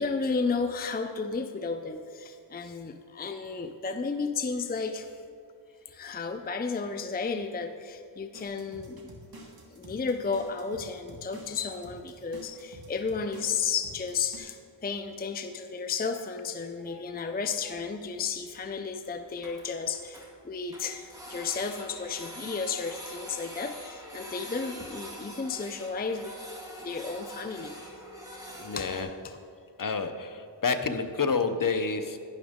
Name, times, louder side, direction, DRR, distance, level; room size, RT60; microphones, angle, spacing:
voice 1, 0.0-5.2 5.9-9.1 9.7-26.3 26.8-27.8 28.8-28.9 29.2-29.4, left 5 dB, 20° left, 7 dB, 0.5 m, -33 dB
sound 1, 8.3-14.4, right 1 dB, 50° right, 1.6 m, -49 dB
Printer, 17.4-17.5 17.7-17.8 18.2-18.3 18.5-18.6 18.9-19.0 19.2-20.3 20.7-29.0, equal, 10° right, 2.3 m, -44 dB
voice 2, 28.6-29.1 29.8-32.2, left 4 dB, 45° left, 8 dB, 0.8 m, -29 dB
11.5 x 10.5 x 3.6 m, 2.5 s
wide cardioid pair, 75°, 45 cm